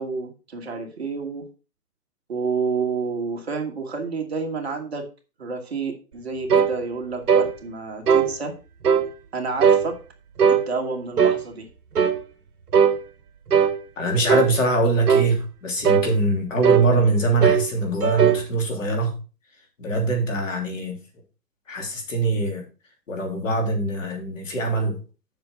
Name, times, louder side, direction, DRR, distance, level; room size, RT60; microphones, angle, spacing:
voice 1, 0.0-1.4 2.3-5.0 5.4-8.6 9.3-10.0 10.5-11.7, right 4 dB, 40° right, 2 dB, 1.5 m, -29 dB
sound 1, 6.5-6.8 7.3-7.5 8.1-8.3 8.8-9.1 9.6-9.9 10.4-10.6 11.2-11.4 12.0-12.2 12.7-13.0 13.5-13.8 14.3-14.5 15.1-15.3 15.8-16.1 16.6-16.9 17.4-17.7 18.0-18.4, right 7 dB, 65° right, 1.4 m, -18 dB
voice 2, 14.0-19.1 19.8-20.9 21.7-22.6 23.1-25.0, right 2 dB, 50° left, 2 dB, 3.3 m, -23 dB
7.6 x 6.0 x 5.6 m, 0.34 s
hypercardioid pair, 170°, 49 cm